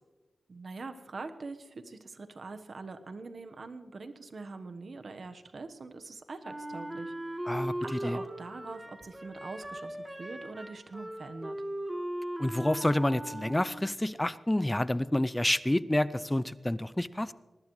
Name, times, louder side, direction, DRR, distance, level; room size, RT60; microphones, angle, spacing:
voice 1, 0.5-7.4 7.8-11.6, right 3 dB, 65° right, 8 dB, 1.2 m, -43 dB
Wind instrument woodwind instrument, 6.4-14.0, right 1 dB, 15° right, 1.9 m, -39 dB
voice 2, 12.4-17.3, left 1 dB, 15° left, 16 dB, 0.5 m, -28 dB
21.5 x 19.5 x 3.2 m, 1.2 s
cardioid pair, 55°, 0 cm